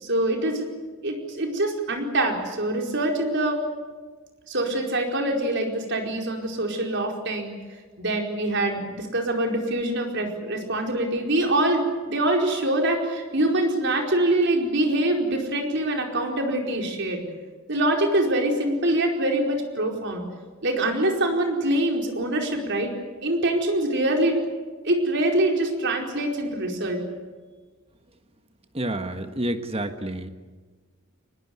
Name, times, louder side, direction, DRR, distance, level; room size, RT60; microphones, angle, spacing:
voice 1, 0.0-0.7 1.0-3.6 4.5-7.5 8.0-17.2 17.7-20.2 20.6-22.9 23.2-24.4 24.8-27.0, right 1 dB, 55° right, 2 dB, 4.7 m, -24 dB
voice 2, 28.7-30.3, right 1 dB, 25° right, 8 dB, 1.4 m, -29 dB
24.0 x 20.5 x 9.6 m, 1.4 s
head